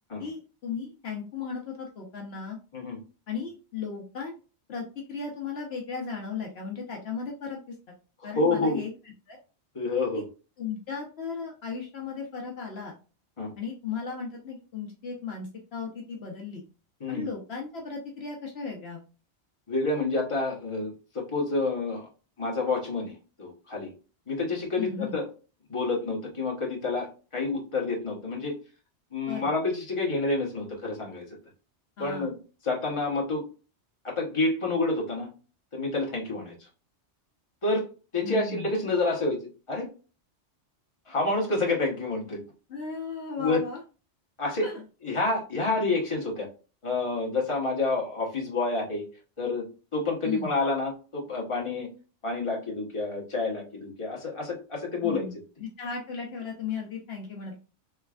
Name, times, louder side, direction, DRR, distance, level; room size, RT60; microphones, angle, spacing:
voice 1, 0.2-2.6 3.3-4.4 4.7-7.7 8.2-8.9 9.3-9.4 10.1-10.2 10.6-13.0 13.6-16.6 17.1-19.0 24.8-25.2 29.3-29.5 32.0-32.3 38.2-38.7 42.7-43.8 44.6-44.8 50.2-50.5 55.0-57.6, left 5 dB, 65° left, 0 dB, 1.0 m, -36 dB
voice 2, 8.3-8.8 9.7-10.2 13.4-13.5 17.0-17.3 19.7-22.1 22.4-23.9 24.3-25.2 25.7-28.5 29.1-31.3 32.0-32.3 32.6-33.5 34.0-35.3 35.7-36.7 37.6-37.8 38.1-39.4 39.7-39.9 41.1-42.4 43.4-43.6 44.4-44.6 45.0-46.5 46.8-49.0 49.4-49.7 49.9-51.9 52.2-55.2, left 3 dB, 30° left, -2 dB, 1.1 m, -28 dB
3.4 x 3.1 x 2.3 m, 0.34 s
omnidirectional pair, 1.2 m